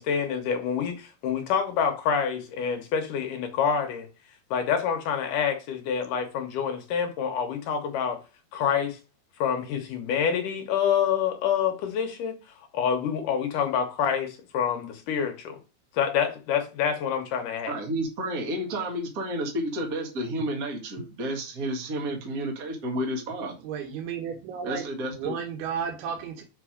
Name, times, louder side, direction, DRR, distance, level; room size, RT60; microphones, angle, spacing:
voice 1, 0.0-4.1 4.5-8.2 8.5-9.0 9.4-12.4 12.7-15.6 15.9-17.7, left 7 dB, 70° left, 2.2 m, -27 dB
voice 2, 17.7-23.5 24.6-25.3, right 1 dB, 40° right, 1.4 m, -31 dB
voice 3, 23.6-24.8 25.2-26.4, right 7 dB, 90° right, 3.1 m, -33 dB
6.0 x 5.6 x 4.9 m
omnidirectional pair, 4.4 m